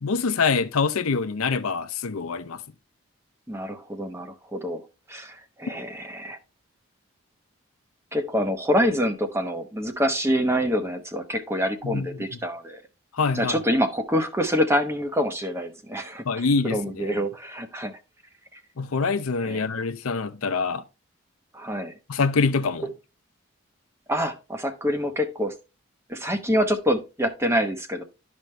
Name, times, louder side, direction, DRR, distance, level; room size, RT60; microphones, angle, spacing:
voice 1, 0.0-2.6 11.8-12.2 13.1-13.6 16.2-17.2 18.8-20.8 22.1-22.9, left 4 dB, 90° left, 0.7 m, -25 dB
voice 2, 3.5-4.8 5.1-6.4 8.1-12.8 13.3-18.0 18.5-18.6 19.4-19.6 21.5-22.0 24.1-25.5 26.1-28.0, equal, 10° right, 1.0 m, -26 dB
12.0 x 5.2 x 3.3 m
head